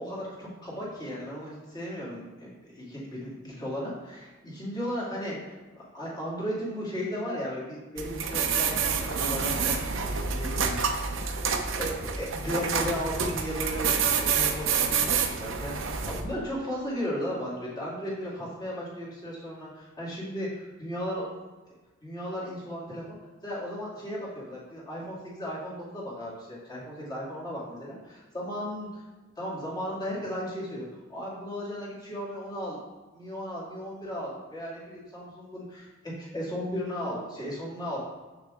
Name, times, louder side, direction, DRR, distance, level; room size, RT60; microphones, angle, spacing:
voice 1, 0.0-21.2 22.0-23.2 23.4-29.0 29.4-30.8 31.1-32.8 33.1-38.0, equal, 20° left, -7 dB, 2.4 m, -35 dB
sound 1, 8.0-16.2, right 6 dB, 75° right, 0.8 m, -28 dB
7.0 x 6.3 x 3.8 m, 1.2 s
head